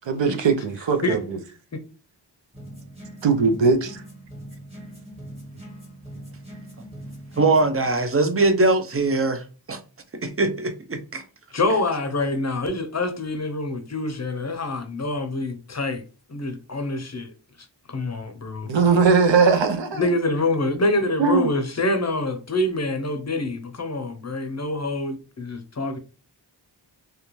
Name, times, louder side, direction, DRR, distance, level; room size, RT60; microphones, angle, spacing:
voice 1, 0.1-1.2 3.2-4.0 18.7-20.0 21.2-21.5, right 5 dB, 80° right, 0.6 m, -19 dB
sound 1, 2.5-7.8, right 1 dB, 15° right, 1.0 m, -41 dB
voice 2, 7.4-9.8 10.1-11.2, right 2 dB, 35° right, 0.5 m, -22 dB
voice 3, 11.5-16.0 16.3-17.3 17.9-18.7 19.9-26.0, left 2 dB, 40° left, 0.5 m, -26 dB
2.4 x 2.2 x 2.9 m
wide cardioid pair, 40°, 44 cm